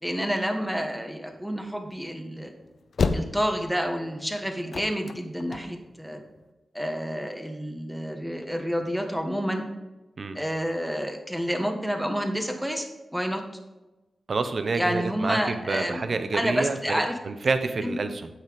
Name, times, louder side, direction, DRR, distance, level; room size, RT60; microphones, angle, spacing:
voice 1, 0.0-2.5 3.1-6.2 6.7-9.7 10.3-12.9 13.1-13.4 14.8-16.0 16.3-17.2 17.8-17.9, equal, ahead, 4 dB, 1.4 m, -29 dB
sound 1, 1.3-6.4, left 4 dB, 70° left, 0.6 m, -30 dB
voice 2, 14.3-18.3, right 4 dB, 60° right, 9 dB, 0.8 m, -28 dB
8.9 x 5.9 x 5.3 m, 1.1 s
cardioid pair, 70°, 0 cm